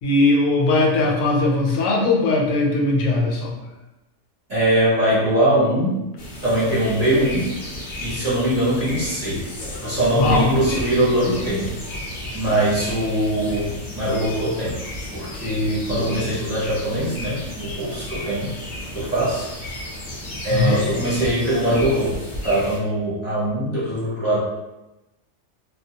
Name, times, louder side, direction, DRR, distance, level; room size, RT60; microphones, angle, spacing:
voice 1, 0.0-3.6 10.1-10.5 16.1-16.2 20.5-20.9, left 2 dB, 90° left, 0 dB, 1.0 m, -19 dB
voice 2, 4.5-6.0 6.4-7.4 8.0-9.4 9.8-11.7 12.3-14.8 15.1-18.5 18.9-19.5 20.4-22.2 22.4-24.4, right 1 dB, 35° right, -9 dB, 0.7 m, -21 dB
sound 1, 6.2-22.8, left 1 dB, 50° left, 0.6 m, -33 dB
2.3 x 2.1 x 2.7 m, 1.0 s
omnidirectional pair, 1.3 m